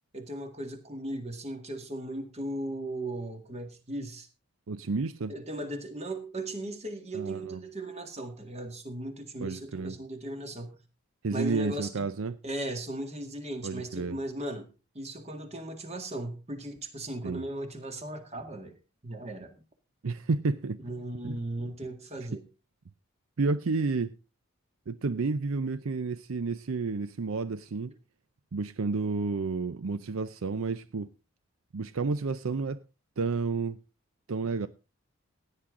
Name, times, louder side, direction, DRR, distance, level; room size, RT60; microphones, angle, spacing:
voice 1, 0.1-4.3 5.3-10.8 11.3-12.1 12.4-14.7 14.9-18.8 19.0-19.5 20.8-22.5, right 1 dB, 30° right, 1.9 m, -37 dB
voice 2, 4.7-5.3 7.1-7.6 9.4-10.0 11.2-12.4 13.6-14.2 17.2-17.4 20.0-20.8 21.2-21.4 23.4-24.1 24.9-27.9 28.5-31.1 31.7-32.8 33.2-33.8 34.3-34.7, right 4 dB, 65° right, 0.6 m, -31 dB
16.0 x 10.0 x 3.7 m
head